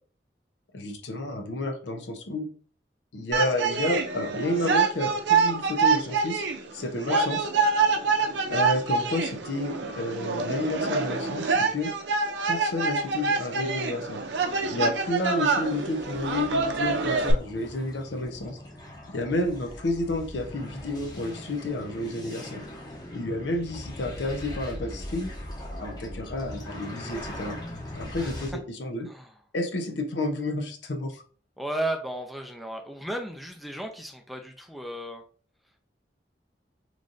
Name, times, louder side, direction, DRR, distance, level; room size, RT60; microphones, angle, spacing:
voice 1, 0.7-2.5 3.1-6.5 6.7-7.4 8.5-11.9 12.5-14.2 14.7-18.6 19.1-22.6 23.1-25.3 25.8-27.6 27.9-29.1 29.5-31.2, left 1 dB, 75° left, 6 dB, 0.7 m, -30 dB
sound 1, 3.3-17.3, right 4 dB, 75° right, 0.5 m, -26 dB
sound 2, 14.1-28.5, left 1 dB, 20° left, 0.7 m, -41 dB
voice 2, 31.6-35.2, right 1 dB, ahead, 3 dB, 0.4 m, -34 dB
3.1 x 2.6 x 3.8 m, 0.43 s
head